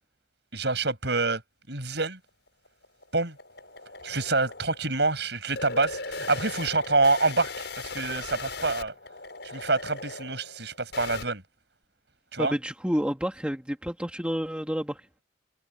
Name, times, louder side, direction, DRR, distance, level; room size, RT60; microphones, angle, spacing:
voice 1, 0.5-1.4 1.7-2.2 3.1-3.4 4.0-8.9 9.4-11.4 12.3-12.5, right 3 dB, 65° right, 7.4 m, -26 dB
sound 1, 2.3-11.3, left 3 dB, 65° left, 7.9 m, -39 dB
voice 2, 12.4-15.0, equal, 5° right, 1.8 m, -29 dB
head